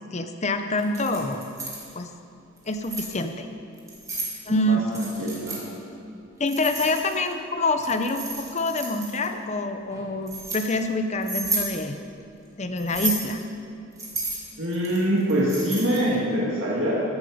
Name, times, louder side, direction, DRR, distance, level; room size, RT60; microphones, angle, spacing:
voice 1, 0.1-1.4 1.9-2.1 2.7-3.5 4.5-4.8 6.4-12.0 12.6-13.4, left 2 dB, 35° left, 7 dB, 0.7 m, -26 dB
Keys jangling, 0.8-1.9 2.6-3.1 3.8-4.3 4.9-5.6 6.5-7.3 7.8-9.3 9.9-10.6 11.2-11.7 12.8-13.3 14.0-16.1, right 3 dB, 15° right, 2.1 m, -32 dB
voice 2, 4.7-5.6 14.6-17.0, equal, 85° right, -6 dB, 1.9 m, -24 dB
14.5 x 8.2 x 5.1 m, 2.5 s
head